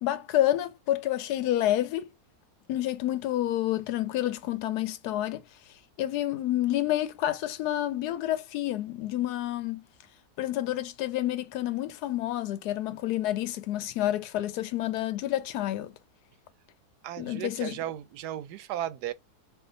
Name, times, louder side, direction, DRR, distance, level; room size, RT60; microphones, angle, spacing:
voice 1, 0.0-2.0 2.7-5.4 6.0-9.8 10.4-15.9 17.2-17.8, left 13 dB, 85° left, 1.2 m, -29 dB
voice 2, 17.0-19.1, right 12 dB, 90° right, 1.1 m, -35 dB
3.4 x 2.4 x 3.8 m
omnidirectional pair, 1.7 m